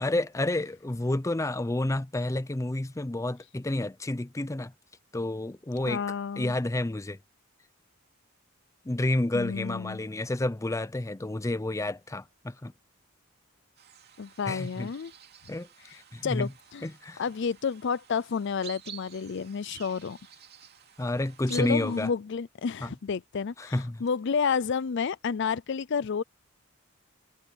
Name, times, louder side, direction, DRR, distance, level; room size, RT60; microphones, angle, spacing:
voice 1, 0.0-4.7 5.1-6.0 6.4-7.2 8.9-12.7 14.5-14.9 15.5-16.5 16.8-17.2 21.0-22.1 22.8-22.9 23.6-24.0, left 1 dB, 15° left, 0.5 m, -30 dB
voice 2, 5.9-6.5 9.3-10.0 14.2-15.1 15.9-16.0 16.2-16.9 17.2-20.2 21.5-26.2, left 6 dB, 60° left, 0.5 m, -30 dB
sound 1, 13.8-22.1, right 8 dB, 50° right, 2.7 m, -50 dB
head